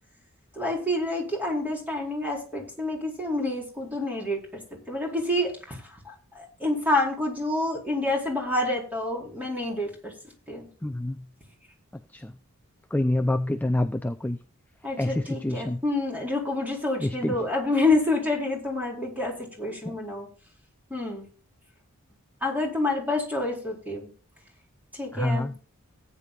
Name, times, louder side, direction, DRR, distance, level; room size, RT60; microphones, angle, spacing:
voice 1, 0.6-4.6 4.9-5.8 6.0-10.1 10.5-10.7 14.8-20.3 20.9-21.3 22.4-24.0 25.0-25.5, left 2 dB, 10° right, -1 dB, 4.3 m, -28 dB
voice 2, 10.8-11.1 12.1-12.3 12.9-14.4 15.0-15.8 17.0-17.4 25.1-25.5, left 1 dB, 5° left, 8 dB, 0.5 m, -26 dB
18.0 x 9.8 x 2.5 m, 0.37 s
head